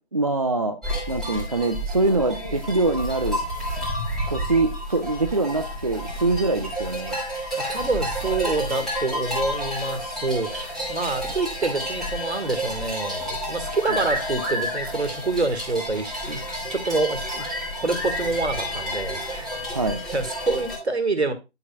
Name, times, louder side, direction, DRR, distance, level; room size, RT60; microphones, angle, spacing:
voice 1, 0.1-0.8 1.1-3.4 4.3-7.2 13.9-14.0 19.7-20.0, right 2 dB, 30° right, 6 dB, 0.5 m, -24 dB
sound 1, 0.8-20.8, equal, ahead, 1.6 m, -30 dB
voice 2, 7.7-16.4 16.7-17.5 17.8-21.3, right 3 dB, 70° right, 9 dB, 1.8 m, -27 dB
10.5 x 6.0 x 2.3 m, 0.26 s
figure-of-eight pair, 150°, 34 cm